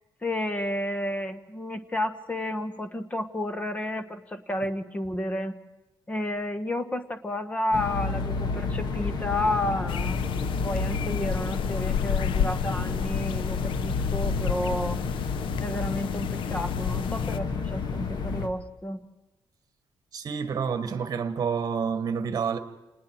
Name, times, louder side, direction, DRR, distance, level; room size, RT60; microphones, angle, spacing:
voice 1, 0.2-5.6 6.1-10.2 10.6-15.0 15.6-19.1, left 1 dB, 15° left, 1.4 m, -31 dB
sound 1, 7.7-18.5, left 4 dB, 60° left, 1.9 m, -30 dB
sound 2, 9.9-17.4, left 9 dB, 80° left, 0.6 m, -32 dB
voice 2, 20.1-22.6, right 6 dB, 45° right, 1.7 m, -28 dB
28.5 x 20.0 x 4.7 m
cardioid pair, 155°, 9 cm